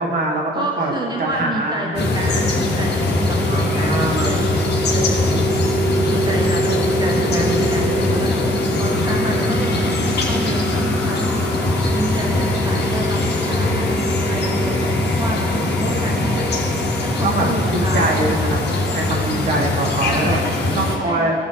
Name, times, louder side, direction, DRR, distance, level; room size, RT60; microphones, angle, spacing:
voice 1, 0.0-0.9 1.2-1.9 3.5-4.4 17.2-17.5 17.7-20.4 20.8-21.3, right 2 dB, 45° right, -2 dB, 1.7 m, -23 dB
voice 2, 0.5-4.6 4.9-5.8 6.1-16.5 16.9-18.3 20.0-21.3, right 1 dB, 20° right, -1 dB, 1.0 m, -29 dB
sound 1, 1.9-21.0, left 1 dB, 55° left, 1.3 m, -20 dB
sound 2, 8.7-17.8, left 1 dB, 5° left, 1.4 m, -33 dB
15.5 x 5.2 x 2.8 m, 2.3 s
cardioid pair, 90°, 20 cm